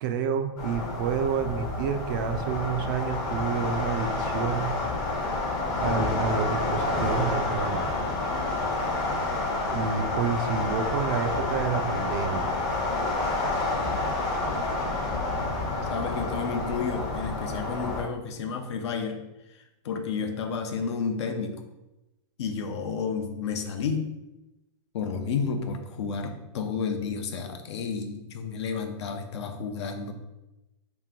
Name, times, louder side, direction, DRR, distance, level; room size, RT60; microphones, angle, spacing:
voice 1, 0.0-4.7 5.8-8.0 9.7-12.5, right 6 dB, 40° right, 7 dB, 0.4 m, -29 dB
sound 1, 0.6-18.0, left 2 dB, 25° left, 0.7 m, -29 dB
voice 2, 15.9-19.2 19.5-21.6 22.4-24.1 24.9-30.1, left 5 dB, 65° left, 6 dB, 0.6 m, -31 dB
3.3 x 2.9 x 3.7 m, 0.98 s
hypercardioid pair, 155°, 15 cm